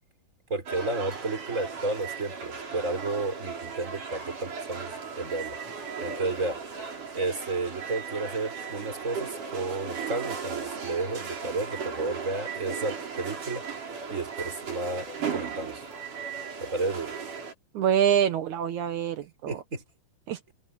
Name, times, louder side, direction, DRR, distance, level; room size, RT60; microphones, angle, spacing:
voice 1, 0.5-6.6 7.1-15.8 16.6-17.1 19.5-19.8, right 3 dB, 15° right, 3.9 m, -32 dB
sound 1, 0.7-17.5, right 6 dB, 40° right, 6.3 m, -36 dB
voice 2, 17.7-19.6 20.3-20.4, right 9 dB, 90° right, 1.7 m, -25 dB
omnidirectional pair, 5.6 m